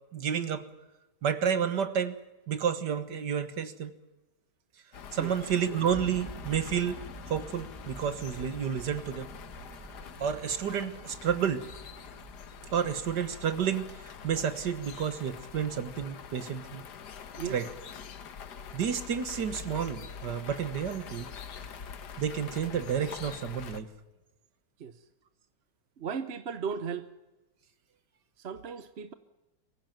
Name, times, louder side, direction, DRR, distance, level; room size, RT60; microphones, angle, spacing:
voice 1, 0.1-0.7 1.2-2.2 2.5-3.9 5.1-7.0 7.3-9.3 10.2-11.6 12.7-16.8 17.5-17.7 18.7-21.3 22.2-23.9, right 8 dB, 75° right, 11 dB, 2.0 m, -30 dB
sound 1, 4.9-23.8, left 7 dB, 70° left, 1.8 m, -45 dB
sound 2, 5.9-13.0, right 1 dB, 10° right, 2.2 m, -48 dB
voice 2, 26.0-27.1 28.4-29.1, right 6 dB, 45° right, 12 dB, 0.9 m, -36 dB
24.0 x 15.5 x 9.0 m, 1.0 s
omnidirectional pair, 1.8 m